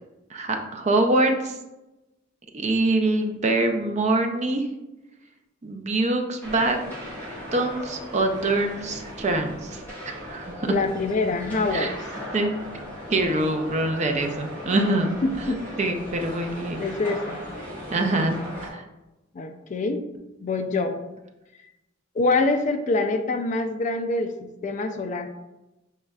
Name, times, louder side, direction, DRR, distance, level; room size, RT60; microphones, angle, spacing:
voice 1, 0.3-1.5 2.5-4.7 5.6-6.9 7.5-9.8 10.1-10.7 11.7-11.9 12.3-12.5 13.1-15.1 15.8-16.8 17.9-18.4 18.7-18.8, right 2 dB, 35° right, 5 dB, 0.5 m, -24 dB
sound 1, 6.4-18.7, equal, 10° left, 1.5 m, -37 dB
voice 2, 10.7-12.0 15.2-15.6 16.8-17.4 19.3-20.0 20.4-21.0 22.2-24.3 24.6-25.3, left 3 dB, 40° left, 7 dB, 0.4 m, -25 dB
6.5 x 3.1 x 2.3 m, 0.99 s
head